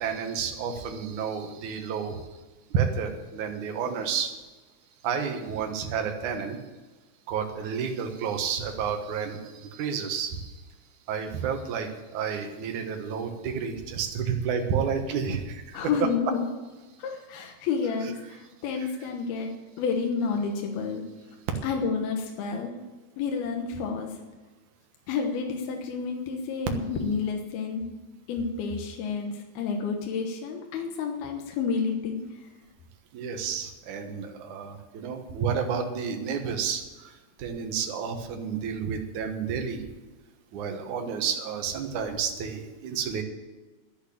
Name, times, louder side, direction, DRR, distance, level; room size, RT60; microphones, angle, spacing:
voice 1, 0.0-2.2 2.7-4.3 5.0-6.6 7.3-10.5 11.1-15.8 33.1-37.1 37.4-39.9 40.5-43.2, right 6 dB, 60° right, 4 dB, 2.3 m, -30 dB
voice 2, 15.7-16.5 17.0-19.5 19.8-21.0 21.6-22.7 23.2-24.1 25.1-27.9 28.3-32.2, left 5 dB, 70° left, 2 dB, 3.0 m, -30 dB
11.0 x 8.5 x 8.6 m, 1.2 s
omnidirectional pair, 4.7 m